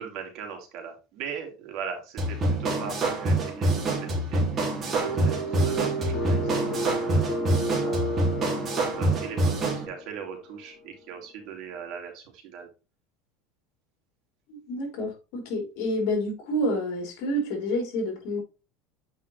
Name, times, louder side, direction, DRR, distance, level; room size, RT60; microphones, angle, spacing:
voice 1, 0.0-6.7 7.0-8.2 8.9-12.7, right 7 dB, 55° right, 2.7 m, -39 dB
sound 1, 2.2-9.9, right 2 dB, 25° right, 2.4 m, -26 dB
sound 2, 4.9-10.1, right 1 dB, 35° left, 2.9 m, -31 dB
voice 2, 14.5-18.4, equal, 65° left, 3.8 m, -29 dB
7.9 x 5.5 x 3.2 m
supercardioid pair, 145°, 0 cm